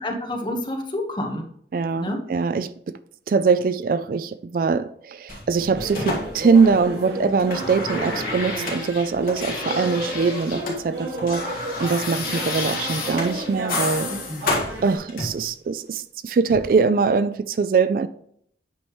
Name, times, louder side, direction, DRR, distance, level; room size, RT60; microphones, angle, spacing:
voice 1, 0.0-1.4 2.0-2.2 14.1-14.4, left 1 dB, 25° left, 1.1 m, -29 dB
voice 2, 1.7-2.9 3.3-14.1 14.8-18.1, right 5 dB, 50° right, 0.3 m, -22 dB
sound 1, 5.3-7.0 7.2-10.8 11.0-15.5 16.5-16.7, left 3 dB, 55° left, 1.9 m, -30 dB
sound 2, 5.7-15.0, right 1 dB, 70° right, 1.9 m, -33 dB
8.5 x 5.5 x 3.1 m
head